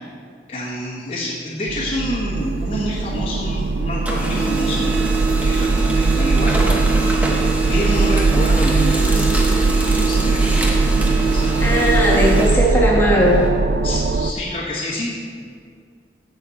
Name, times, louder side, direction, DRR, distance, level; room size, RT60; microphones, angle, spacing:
voice 1, 0.5-4.9 5.4-6.6 7.7-9.6 10.0-10.5 11.3-11.8 13.8-15.1, left 1 dB, 35° left, -9 dB, 1.5 m, -27 dB
sound 1, 1.7-14.3, right 3 dB, 70° right, 0.4 m, -20 dB
Printer, 2.4-3.6 3.9-13.5, right 3 dB, 10° right, 1.0 m, -24 dB
voice 2, 11.6-13.4, equal, 15° left, -4 dB, 1.4 m, -18 dB
15.5 x 6.4 x 4.2 m, 2.2 s
head